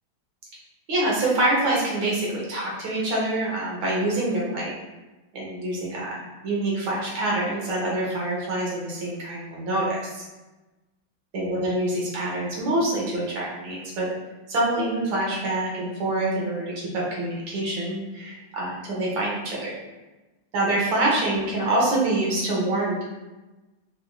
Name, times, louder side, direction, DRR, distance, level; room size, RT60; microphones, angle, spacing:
voice 1, 0.9-4.7 5.3-10.2 11.3-14.1 14.5-19.8 20.5-23.2, right 1 dB, 70° right, -4 dB, 1.7 m, -26 dB
4.9 x 2.5 x 2.3 m, 1.1 s
omnidirectional pair, 2.3 m